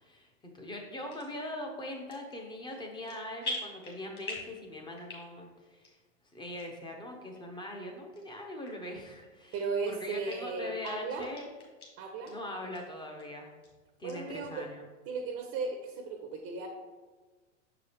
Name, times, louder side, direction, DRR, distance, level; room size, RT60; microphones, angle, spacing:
voice 1, 0.0-6.0 6.3-9.6 9.9-11.5 12.3-13.5 14.0-14.8, left 1 dB, 10° left, 2 dB, 0.8 m, -41 dB
sound 1, 1.1-1.3 1.9-2.4 2.7-3.1 3.4-4.6 4.9-5.5 5.8-5.9 6.6-6.7 7.3-7.4 8.1-8.2 8.6-8.7 9.2-9.9 10.3-10.4 10.8-10.9 11.2-11.9 12.3-12.4 12.7-12.8 13.2-13.7 14.1-14.2, left 2 dB, 30° left, 1.9 m, -41 dB
voice 2, 9.5-11.3 12.0-12.3 14.0-14.7 15.1-16.7, right 4 dB, 35° right, 5 dB, 0.7 m, -36 dB
6.5 x 4.8 x 3.3 m, 1.3 s
hypercardioid pair, 120°, 38 cm